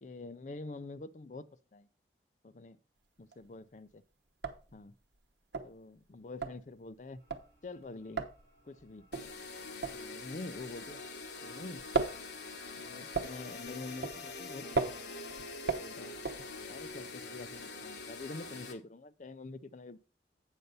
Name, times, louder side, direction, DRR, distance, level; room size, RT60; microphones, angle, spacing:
voice 1, 0.0-1.4 1.7-1.9 2.4-2.8 3.2-4.0 4.7-4.9 5.6-7.2 7.6-8.2 8.7-9.1 9.9-11.0 11.4-11.8 12.8-15.1 15.7-16.2 16.7-20.0, left 3 dB, 45° left, 0.4 m, -46 dB
sound 1, 3.0-3.6 3.9-4.0 4.3-11.3 11.6-16.9, right 4 dB, 80° right, 0.9 m, -37 dB
sound 2, 7.1-18.6, equal, 25° left, 3.7 m, -62 dB
sound 3, 9.1-18.7, left 3 dB, 75° left, 1.2 m, -45 dB
8.2 x 6.6 x 4.0 m
head